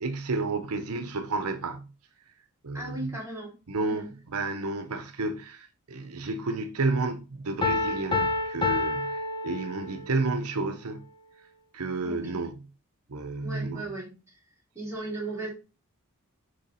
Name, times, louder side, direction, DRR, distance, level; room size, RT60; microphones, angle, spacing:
voice 1, 0.0-1.8 2.6-3.1 3.7-11.1 11.7-12.6 13.1-13.8, right 3 dB, 80° right, 0.8 m, -31 dB
voice 2, 2.7-3.5 3.8-4.1 12.0-12.4 13.4-14.4 14.7-15.5, right 2 dB, 10° right, 3.2 m, -37 dB
Piano, 7.6-10.2, left 3 dB, 20° left, 1.0 m, -28 dB
7.0 x 3.5 x 4.2 m
head